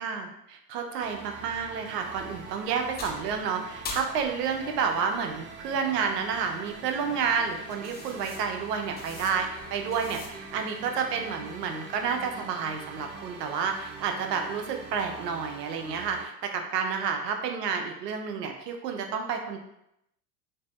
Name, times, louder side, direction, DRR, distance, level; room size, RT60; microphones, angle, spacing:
voice 1, 0.0-19.6, right 6 dB, 80° right, 4 dB, 0.7 m, -30 dB
sound 1, 1.0-16.3, right 4 dB, 25° right, 0.4 m, -44 dB
sound 2, 1.5-10.6, left 3 dB, 20° left, 0.5 m, -46 dB
4.0 x 2.7 x 2.4 m, 0.80 s
hypercardioid pair, 85°, 48 cm